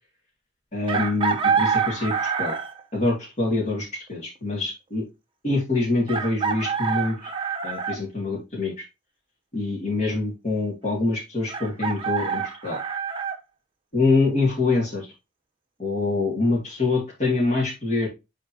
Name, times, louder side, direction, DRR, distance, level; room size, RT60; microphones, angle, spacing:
voice 1, 0.7-2.5 2.9-5.0 5.4-7.3 7.6-8.8 9.5-12.8 13.9-15.1 15.8-18.1, left 3 dB, 35° left, -3 dB, 2.3 m, -25 dB
Chicken rooster, 0.9-2.8 4.5-4.6 6.1-8.0 11.5-13.4, right 6 dB, 30° right, 0.8 m, -26 dB
8.8 x 3.8 x 2.8 m, 0.25 s
head